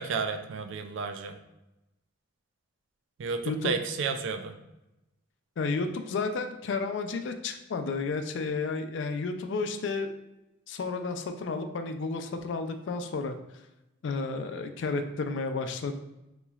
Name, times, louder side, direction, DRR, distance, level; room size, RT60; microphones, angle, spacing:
voice 1, 0.0-1.4 3.2-4.6, right 5 dB, 70° right, 8 dB, 0.3 m, -32 dB
voice 2, 5.6-10.1 10.7-13.4 14.0-16.0, left 4 dB, 70° left, 7 dB, 0.4 m, -32 dB
3.9 x 3.0 x 2.3 m, 0.94 s
head